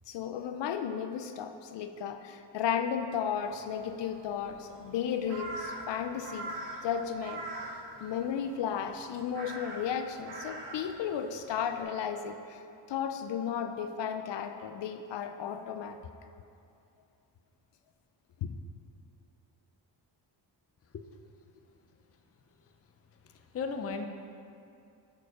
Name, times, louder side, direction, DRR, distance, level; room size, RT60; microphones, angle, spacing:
voice 1, 0.1-6.5 6.8-7.5 8.0-12.6 12.9-16.0 18.4-18.5, left 8 dB, 80° left, 8 dB, 0.6 m, -34 dB
Crow, 3.3-11.8, right 2 dB, 80° right, 1.4 m, -44 dB
voice 2, 23.2-24.1, left 5 dB, 35° left, 5 dB, 0.5 m, -36 dB
11.0 x 4.7 x 4.9 m, 2.6 s
wide cardioid pair, 130°, 42 cm